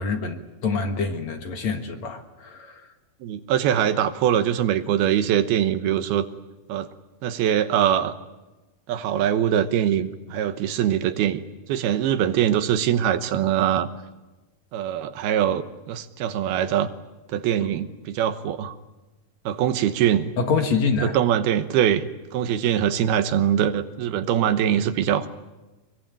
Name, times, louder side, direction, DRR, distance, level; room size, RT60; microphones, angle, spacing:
voice 1, 0.0-2.8 20.4-21.2, left 5 dB, 55° left, 5 dB, 2.4 m, -26 dB
voice 2, 3.2-6.3 6.7-6.9 7.2-8.1 8.9-11.4 11.7-13.9 14.7-16.9 17.3-18.8 19.5-20.3 21.0-25.3, right 10 dB, 80° right, 10 dB, 3.0 m, -23 dB
25.0 x 22.0 x 9.0 m, 1.1 s
omnidirectional pair, 4.4 m